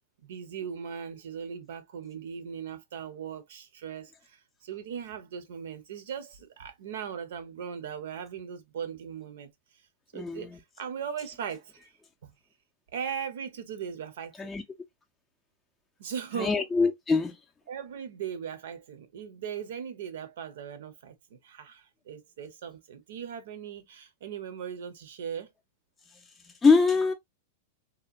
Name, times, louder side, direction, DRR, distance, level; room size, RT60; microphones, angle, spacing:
voice 1, 0.2-9.5 10.1-11.9 12.2-12.3 12.9-14.5 16.0-16.6 17.7-25.5, right 7 dB, 75° right, 0.7 m, -39 dB
voice 2, 10.1-10.5 14.4-14.6 16.4-17.3 26.6-27.1, left 4 dB, 10° left, 0.4 m, -23 dB
2.8 x 2.1 x 2.4 m
hypercardioid pair, 130°, 0 cm